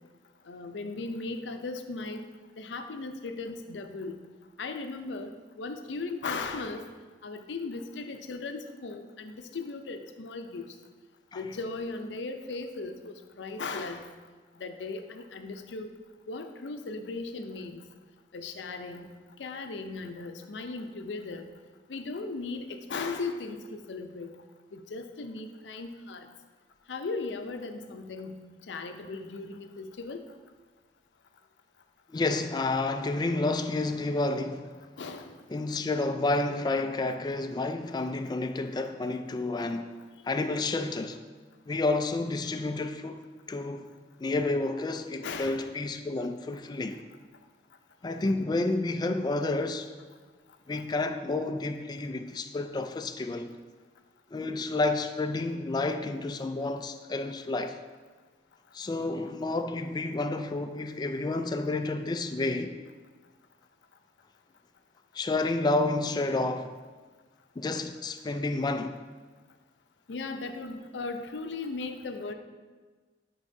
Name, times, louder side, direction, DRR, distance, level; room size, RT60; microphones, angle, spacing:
voice 1, 0.5-2.2 2.6-4.2 4.6-6.9 7.2-10.7 11.3-14.1 14.6-15.9 16.3-17.8 18.3-19.1 19.4-21.5 21.9-24.3 24.7-26.3 26.9-28.4 28.7-30.2 35.0-35.4 45.2-45.6 70.1-72.3, left 3 dB, 85° left, 0.5 m, -37 dB
voice 2, 32.1-34.8 35.5-39.9 40.2-41.2 41.7-43.9 44.2-47.0 48.0-49.9 50.7-53.5 54.3-57.8 58.7-62.8 65.1-66.7 67.6-69.0, left 2 dB, 25° left, 0.3 m, -30 dB
10.5 x 4.7 x 2.6 m
head